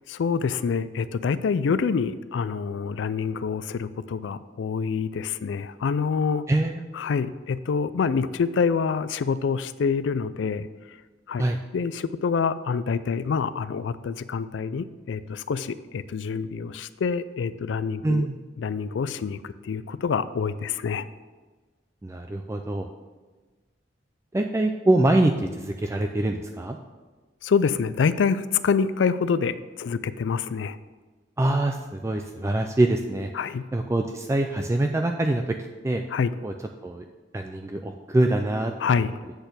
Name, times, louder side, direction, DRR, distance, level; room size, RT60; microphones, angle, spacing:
voice 1, 0.1-6.4 6.9-10.7 11.3-11.5 11.7-18.3 18.6-21.1 27.4-30.8 33.3-33.6 36.1-36.3 38.8-39.2, left 5 dB, 75° left, 14 dB, 0.4 m, -26 dB
voice 2, 6.5-6.8 11.4-11.6 18.0-18.4 22.0-22.9 24.3-26.8 31.4-33.3 33.7-35.4 35.8-36.0 36.4-36.5 36.8-37.0 37.3-38.7, right 1 dB, 15° right, 4 dB, 0.3 m, -24 dB
7.9 x 4.3 x 6.8 m, 1.3 s
head